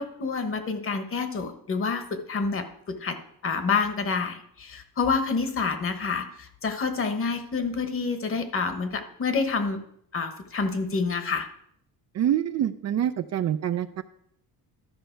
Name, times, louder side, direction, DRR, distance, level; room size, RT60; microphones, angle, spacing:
voice 1, 0.0-3.2 3.4-9.8 10.1-11.5, left 4 dB, 35° left, 8 dB, 1.2 m, -28 dB
voice 2, 12.1-14.0, right 10 dB, 45° right, 11 dB, 0.5 m, -26 dB
12.5 x 5.3 x 4.5 m, 0.70 s
cardioid pair, 115°, 37 cm